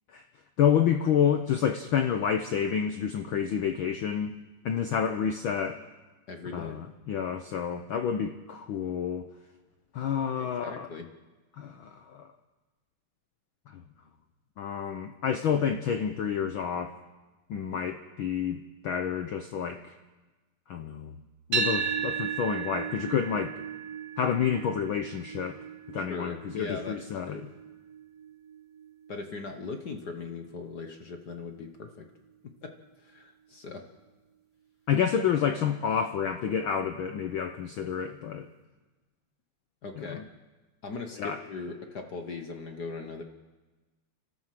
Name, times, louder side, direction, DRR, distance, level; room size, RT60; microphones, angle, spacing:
voice 1, 0.6-4.3 4.6-5.8 6.5-9.3 9.9-10.9 11.6-12.3 13.7-13.8 14.6-16.9 17.5-19.8 20.7-21.2 21.5-23.6 24.2-25.6 25.9-27.4 34.9-38.5 40.0-40.2 41.2-41.4, left 8 dB, 80° left, 7 dB, 1.1 m, -29 dB
voice 2, 6.3-6.8 10.2-11.1 25.9-27.0 27.2-27.4 29.1-32.0 32.6-32.7 33.0-33.8 39.8-40.2 40.8-43.2, left 4 dB, 55° left, 5 dB, 1.2 m, -39 dB
sound 1, 21.5-29.7, right 6 dB, 35° right, 1.7 m, -35 dB
29.5 x 13.0 x 7.5 m, 1.2 s
omnidirectional pair, 3.3 m